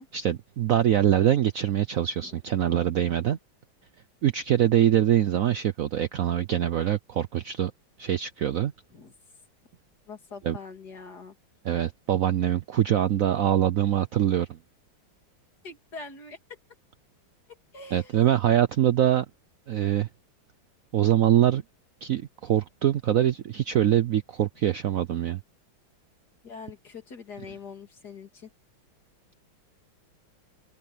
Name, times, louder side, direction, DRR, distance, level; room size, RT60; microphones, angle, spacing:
voice 1, 0.0-3.4 4.2-7.7 8.0-8.7 10.4-10.6 11.6-14.6 17.9-19.2 19.7-20.1 20.9-21.6 22.0-25.4, right 11 dB, 90° right, 0.7 m, -24 dB
voice 2, 10.1-11.3 15.6-16.6 17.5-18.1 26.4-28.5, left 4 dB, 50° left, 3.3 m, -43 dB
open air
omnidirectional pair, 2.3 m